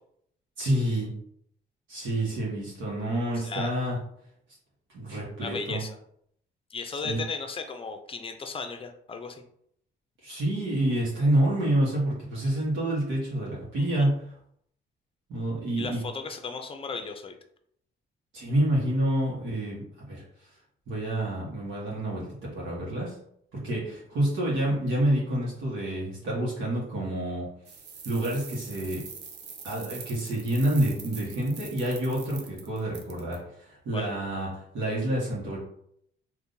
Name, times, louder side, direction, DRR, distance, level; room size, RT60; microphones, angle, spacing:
voice 1, 0.6-1.1 1.9-4.0 4.9-5.8 7.0-7.2 10.2-14.2 15.3-16.0 18.3-20.2 20.9-23.2 23.5-27.5 28.0-29.1 29.6-35.6, right 1 dB, 75° right, -6 dB, 1.3 m, -28 dB
voice 2, 5.4-6.0 6.7-9.4 13.8-14.1 15.8-17.3 33.9-34.1, left 4 dB, 30° left, 6 dB, 0.5 m, -36 dB
sound 1, 27.6-33.3, right 6 dB, 60° right, 0.7 m, -44 dB
3.6 x 2.6 x 2.6 m, 0.69 s
cardioid pair, 90°, 20 cm